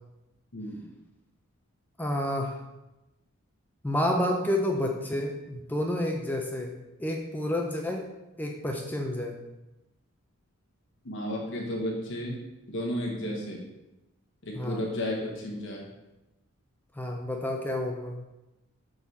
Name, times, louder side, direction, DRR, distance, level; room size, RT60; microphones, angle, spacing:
voice 1, 0.5-0.9 11.0-13.6 14.4-15.9, equal, 55° left, -1 dB, 1.0 m, -33 dB
voice 2, 2.0-2.6 3.8-6.7 7.0-8.1 8.4-9.4 14.6-14.8 17.0-18.2, left 1 dB, 10° left, 1 dB, 0.4 m, -29 dB
6.2 x 3.8 x 4.1 m, 0.98 s
head